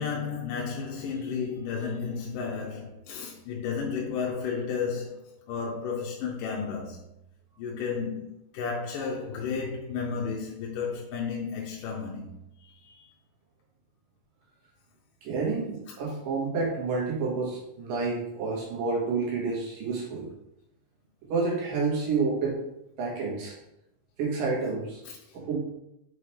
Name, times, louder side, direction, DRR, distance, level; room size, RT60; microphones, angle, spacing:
voice 1, 0.0-7.1 7.6-12.3 12.6-13.1 15.9-16.2 25.3-25.4, left 5 dB, 80° left, 2.3 m, -33 dB
voice 2, 15.2-20.3 21.3-22.6 23.0-23.5 24.2-25.0 25.3-25.6, right 4 dB, 80° right, 3.2 m, -29 dB
6.9 x 4.3 x 3.3 m
omnidirectional pair, 3.9 m